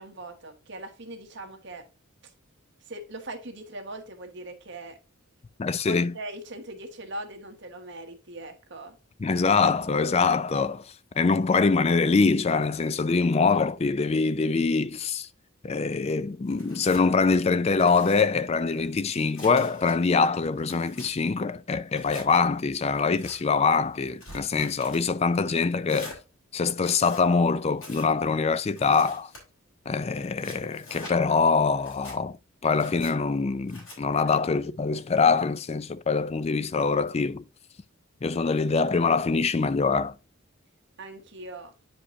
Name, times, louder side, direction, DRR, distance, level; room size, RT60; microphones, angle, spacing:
voice 1, 0.0-1.9 2.8-5.0 5.9-9.0 34.2-34.3 41.0-41.7, right 2 dB, 55° right, 1.3 m, -40 dB
voice 2, 5.6-6.1 9.2-10.8 11.2-15.3 15.6-26.2 26.5-29.3 29.9-32.4 32.6-37.4 38.2-40.1, left 4 dB, 30° left, 0.4 m, -24 dB
Tearing, 16.5-17.1 17.6-18.2 18.8-19.9 20.4-21.1 21.9-22.3 23.0-23.4 24.0-25.0 25.9-26.2 26.8-27.2 27.8-28.1 28.8-29.4 30.1-31.2 31.7-32.2 32.7-33.1 33.7-34.0, left 1 dB, 60° left, 4.2 m, -45 dB
9.7 x 5.1 x 2.6 m
head